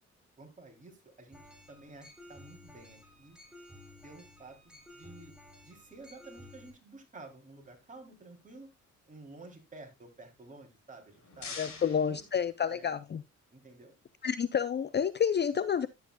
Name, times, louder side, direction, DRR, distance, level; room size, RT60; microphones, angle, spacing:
voice 1, 0.4-1.4 1.7-3.4 4.0-5.3 5.6-8.7 9.1-12.2 12.7-12.9 13.5-13.9, right 2 dB, 25° right, 2 dB, 3.3 m, -52 dB
sound 1, 1.3-6.7, left 1 dB, 5° right, 3.7 m, -54 dB
sound 2, 10.8-13.1, left 5 dB, 65° left, 4.4 m, -47 dB
voice 2, 11.6-13.2 14.2-15.9, left 7 dB, 35° left, 14 dB, 0.5 m, -29 dB
11.0 x 8.3 x 2.3 m, 0.20 s
cardioid pair, 90°, 30 cm